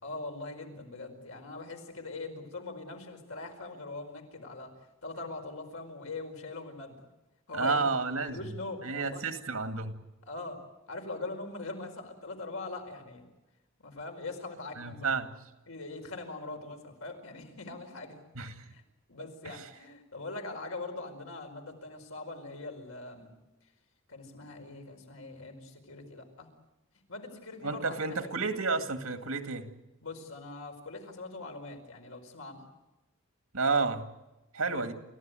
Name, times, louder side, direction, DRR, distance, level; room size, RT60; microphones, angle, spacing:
voice 1, 0.0-4.7 5.0-7.0 7.5-7.8 8.3-9.3 10.2-10.6 10.9-13.2 13.8-15.1 15.7-18.2 18.7-18.8 19.1-23.3 24.1-26.5 27.1-28.4 30.0-32.7 34.7-34.9, left 3 dB, 80° left, 3 dB, 4.8 m, -42 dB
voice 2, 7.5-8.4 8.8-9.9 14.8-15.3 18.4-18.7 19.4-19.7 27.6-29.7 33.5-34.1 34.5-34.9, right 4 dB, 85° right, 7 dB, 2.3 m, -31 dB
30.0 x 14.5 x 9.1 m, 1.0 s
head